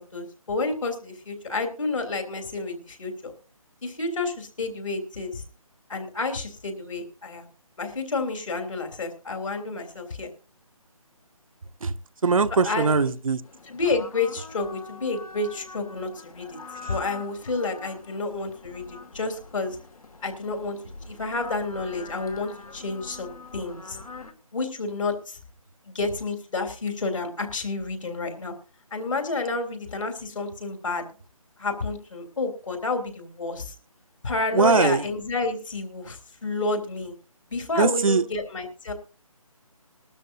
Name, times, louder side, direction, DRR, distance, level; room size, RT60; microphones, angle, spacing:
voice 1, 0.0-3.3 3.8-5.4 5.9-7.5 7.8-10.3 12.6-12.9 13.7-16.6 16.9-19.8 20.2-20.8 21.1-24.0 24.5-25.4 25.8-28.5 28.9-31.0 31.6-33.7 34.2-37.1 37.5-38.9, left 3 dB, 60° left, 5 dB, 3.3 m, -30 dB
voice 2, 12.2-13.4 16.8-16.9 34.5-35.0 37.8-38.2, right 4 dB, 65° right, 11 dB, 0.8 m, -21 dB
sound 1, 13.4-24.3, left 4 dB, 75° left, 2.1 m, -44 dB
21.0 x 12.5 x 2.7 m, 0.36 s
figure-of-eight pair, 165°, 19 cm